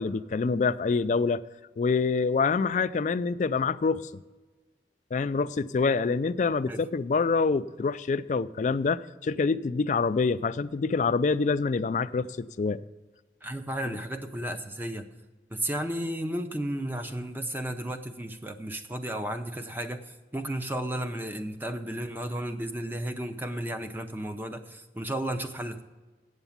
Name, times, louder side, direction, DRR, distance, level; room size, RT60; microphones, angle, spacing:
voice 1, 0.0-1.4 1.8-4.1 5.1-12.8, left 4 dB, 45° left, 0.3 m, -26 dB
voice 2, 13.4-15.0 15.5-25.8, right 1 dB, 10° right, 0.6 m, -33 dB
8.1 x 8.0 x 7.2 m
head